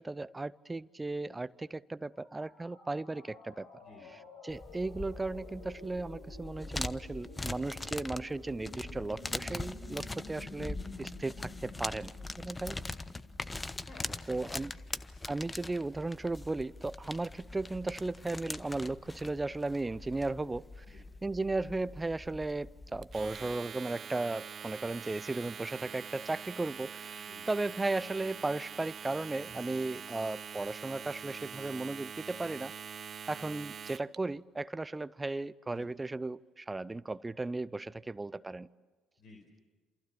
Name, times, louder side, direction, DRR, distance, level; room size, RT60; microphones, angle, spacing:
voice 1, 0.0-3.7 4.4-12.8 14.3-14.7 15.3-20.7 21.2-32.7 33.3-38.7, right 2 dB, 20° right, 18 dB, 0.8 m, -36 dB
sound 1, 2.1-14.0, left 2 dB, 70° left, 6.4 m, -51 dB
voice 2, 3.8-4.2 12.7-12.8 13.9-14.9 20.9-21.0 27.2-27.5 35.7-35.9 39.2-39.5, left 3 dB, 55° left, 2 dB, 5.0 m, -55 dB
sound 2, 4.5-23.6, left 2 dB, 20° left, 1.1 m, -42 dB
Domestic sounds home sounds, 23.0-34.2, right 7 dB, 45° right, 0.9 m, -44 dB
28.5 x 28.0 x 7.2 m, 1.3 s
hypercardioid pair, 55°, 0 cm